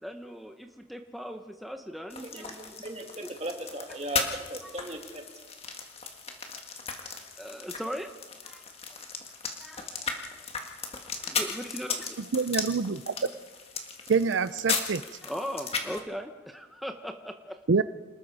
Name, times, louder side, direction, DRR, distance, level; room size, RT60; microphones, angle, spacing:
voice 1, 0.0-2.8 3.2-3.3 4.6-4.8 7.4-8.1 8.4-9.0 9.6-10.5 10.9-12.2 15.2-17.6, equal, ahead, 4 dB, 0.9 m, -39 dB
sound 1, 2.1-16.0, left 5 dB, 30° left, 1.8 m, -36 dB
voice 2, 2.8-5.2, right 1 dB, 35° right, 2 dB, 2.5 m, -37 dB
voice 3, 12.3-13.1 14.1-15.0 17.7-17.8, right 5 dB, 90° right, 14 dB, 0.5 m, -25 dB
27.0 x 20.0 x 4.9 m, 1.3 s
head